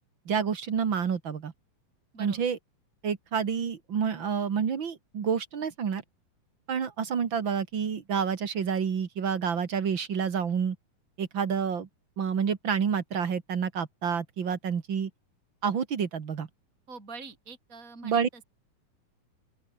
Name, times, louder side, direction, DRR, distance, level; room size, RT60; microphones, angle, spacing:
voice 1, 0.3-1.5 2.2-2.6 3.0-6.0 6.7-10.8 11.2-11.9 12.2-15.1 15.6-16.5 18.0-18.3, right 7 dB, 40° right, 2.1 m, -29 dB
voice 2, 2.1-2.5 16.9-18.4, right 4 dB, 25° right, 5.5 m, -45 dB
open air
omnidirectional pair, 3.9 m